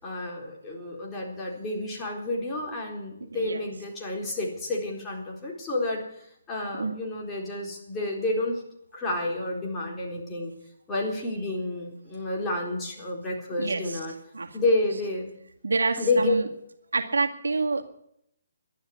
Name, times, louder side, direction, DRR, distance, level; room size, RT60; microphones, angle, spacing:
voice 1, 0.0-6.0 6.5-8.6 8.9-10.5 10.9-14.1 14.5-15.3 16.0-16.3, left 2 dB, 15° left, -3 dB, 4.1 m, -30 dB
voice 2, 3.3-3.6 6.8-6.9 13.6-14.0 14.3-14.6 15.6-16.5 16.9-17.8, right 3 dB, 85° right, 4 dB, 2.0 m, -27 dB
12.0 x 11.5 x 9.9 m, 0.75 s
hypercardioid pair, 150°, 0 cm